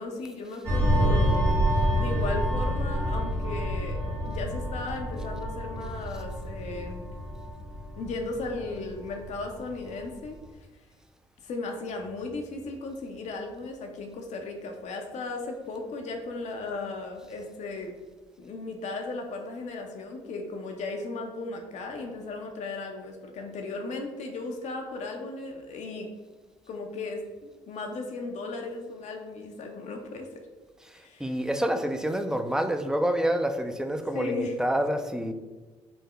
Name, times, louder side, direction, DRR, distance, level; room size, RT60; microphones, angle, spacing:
voice 1, 0.0-1.5 2.0-7.0 8.0-10.7 11.4-17.9 18.4-26.1 26.7-30.3 30.9-31.3 34.1-34.6, left 3 dB, 60° left, 3 dB, 0.5 m, -36 dB
sound 1, 0.6-9.7 10.0-10.3, equal, 85° right, 1.3 m, -28 dB
voice 2, 30.8-35.3, right 1 dB, 5° right, 7 dB, 0.4 m, -28 dB
3.4 x 2.1 x 3.6 m, 1.3 s
hypercardioid pair, 55°, 13 cm